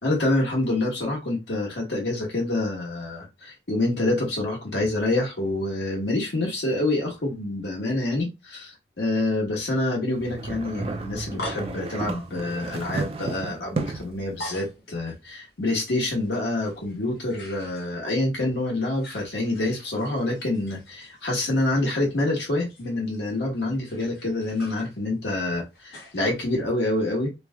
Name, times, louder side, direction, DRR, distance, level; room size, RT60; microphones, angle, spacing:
voice 1, 0.0-27.4, left 2 dB, 85° left, 1.2 m, -27 dB
sound 1, 10.1-14.2, right 3 dB, 35° right, 0.3 m, -33 dB
sound 2, 10.8-18.4 18.6-26.6, left 1 dB, 60° left, 0.9 m, -45 dB
3.0 x 2.7 x 2.3 m
head